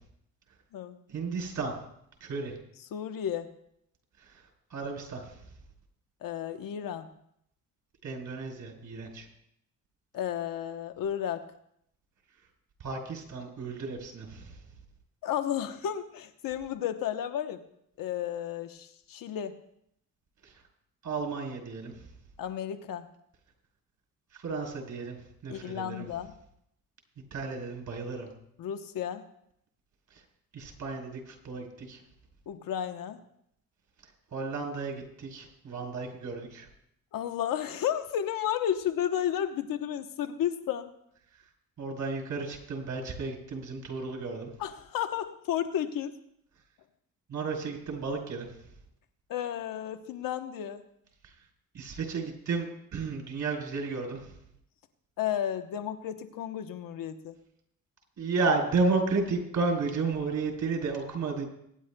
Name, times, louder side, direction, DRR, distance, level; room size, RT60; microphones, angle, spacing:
voice 1, 1.1-1.7 2.2-2.5 4.7-5.4 8.0-9.3 12.8-14.6 21.0-21.9 24.3-25.2 25.4-26.0 27.3-28.3 30.5-32.0 34.3-36.7 41.8-44.5 47.3-48.5 51.7-54.2 58.2-61.4, right 4 dB, 60° right, 1 dB, 3.7 m, -32 dB
voice 2, 2.9-3.5 6.2-7.1 10.1-11.4 15.2-17.6 18.0-19.6 22.4-23.1 25.5-26.3 28.6-29.2 32.5-33.2 37.1-40.9 44.6-46.1 49.3-50.8 55.2-57.3, left 10 dB, 75° left, 9 dB, 1.0 m, -32 dB
24.0 x 10.0 x 2.2 m, 0.73 s
cardioid pair, 80°, 34 cm